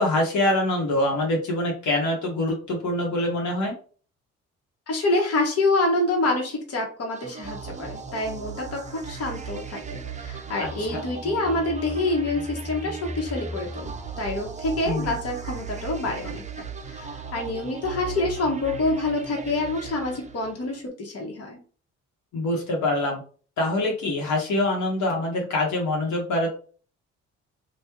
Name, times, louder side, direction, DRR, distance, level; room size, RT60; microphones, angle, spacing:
voice 1, 0.0-3.7 10.6-11.1 14.8-15.1 22.3-23.2 23.6-26.5, left 1 dB, 70° left, -1 dB, 1.2 m, -25 dB
voice 2, 4.9-16.4 16.9-21.6, left 2 dB, 50° left, 1 dB, 1.2 m, -27 dB
sound 1, 7.1-20.8, right 4 dB, 25° right, 0.5 m, -36 dB
2.9 x 2.5 x 3.6 m, 0.40 s
cardioid pair, 90°, 30 cm